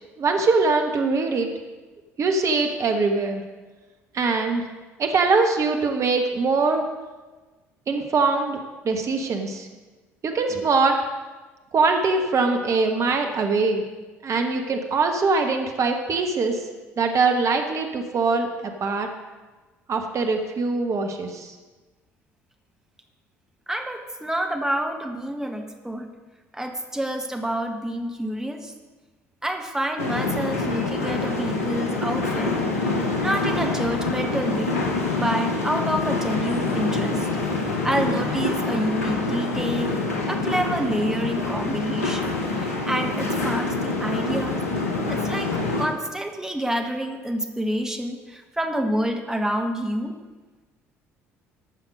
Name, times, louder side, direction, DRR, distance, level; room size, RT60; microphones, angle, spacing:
voice 1, 0.2-1.5 2.2-3.4 4.1-4.6 5.0-6.8 7.9-8.6 8.8-9.7 10.2-11.0 11.7-13.8 14.2-16.6 17.0-18.5 18.8-19.1 19.9-21.5, right 4 dB, 45° right, 4 dB, 1.3 m, -22 dB
voice 2, 23.7-26.1 26.5-28.7 29.4-34.8 35.2-37.3 37.6-39.9 40.3-42.3 42.5-44.6 45.1-50.1, right 1 dB, 5° right, 4 dB, 1.6 m, -28 dB
sound 1, 30.0-45.9, left 3 dB, 85° left, 1.2 m, -26 dB
14.5 x 5.8 x 6.4 m, 1.3 s
figure-of-eight pair, 55°, 7 cm